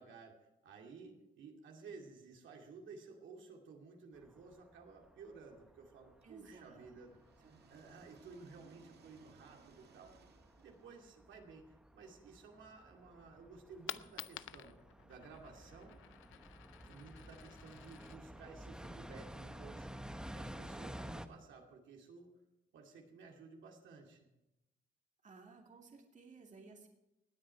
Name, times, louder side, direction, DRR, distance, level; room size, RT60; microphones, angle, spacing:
voice 1, 0.0-7.2 7.7-10.1 10.6-14.8 15.0-16.0 16.8-22.3 22.7-24.3, right 4 dB, 70° right, 1 dB, 2.4 m, -55 dB
sound 1, 4.1-21.3, equal, 5° right, 1.0 m, -52 dB
voice 2, 6.2-7.1 7.4-7.6 25.2-26.9, right 4 dB, 40° right, 2 dB, 2.3 m, -58 dB
sound 2, 6.2-12.1, right 5 dB, 55° right, 1.7 m, -65 dB
Coin (dropping), 13.5-19.5, left 15 dB, 85° left, 0.5 m, -52 dB
18.5 x 9.1 x 4.6 m, 0.92 s
cardioid pair, 90°, 20 cm